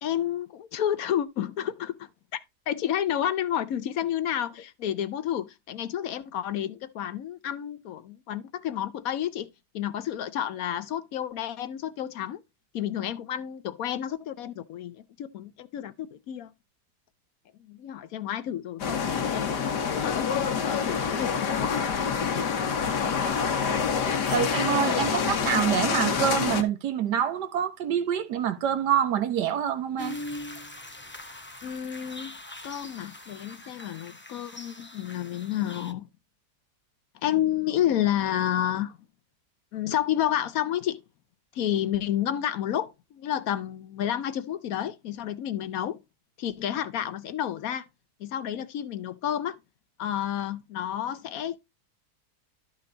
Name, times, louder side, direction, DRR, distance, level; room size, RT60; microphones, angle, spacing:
voice 1, 0.0-2.4 2.7-9.5 9.7-12.4 12.7-16.5 17.7-20.3 20.6-21.7 22.3-22.5 31.6-32.3 32.6-36.1 37.2-39.0 39.7-41.0 41.5-46.0 46.4-47.9 48.2-49.6 50.0-51.6, left 11 dB, 65° left, 1.0 m, -30 dB
sound 1, 18.8-26.6, left 6 dB, 80° left, 1.6 m, -27 dB
voice 2, 24.3-30.2, right 9 dB, 85° right, 1.6 m, -26 dB
sound 2, 30.0-35.9, left 1 dB, 10° left, 0.5 m, -42 dB
12.5 x 4.5 x 3.8 m
omnidirectional pair, 1.7 m